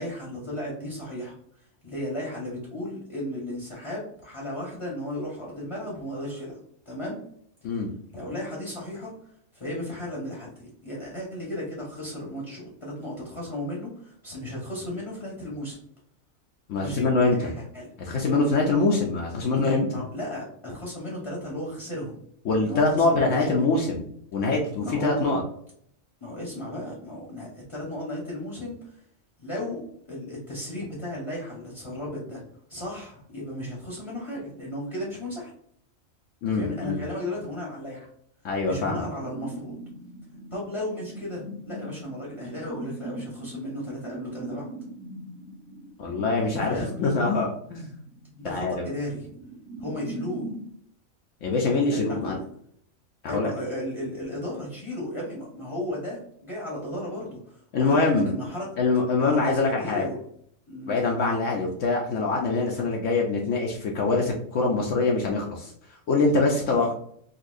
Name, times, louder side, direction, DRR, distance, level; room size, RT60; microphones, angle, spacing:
voice 1, 0.0-1.4 1.8-6.6 6.9-7.2 8.1-9.1 9.5-15.8 16.8-17.9 19.9-22.1 22.6-23.6 24.8-25.3 26.2-28.9 29.4-32.4 32.7-35.5 36.5-38.1 38.7-39.8 40.5-44.7 46.6-46.9 48.4-49.3 49.8-50.5 51.9-52.4 53.3-58.7 59.2-60.2 60.7-61.1 66.4-66.9, left 1 dB, 25° left, -3 dB, 0.9 m, -35 dB
voice 2, 16.7-17.5 18.0-19.9 22.4-25.4 36.4-37.0 38.4-39.1 46.0-47.9 48.4-48.9 51.4-52.4 53.2-53.5 57.7-58.3 58.8-60.0 60.9-65.7 66.1-66.9, left 3 dB, 70° left, -1 dB, 0.9 m, -24 dB
sound 1, 39.2-50.7, right 2 dB, 75° right, 1.3 m, -41 dB
4.0 x 2.7 x 2.6 m, 0.67 s
omnidirectional pair, 1.4 m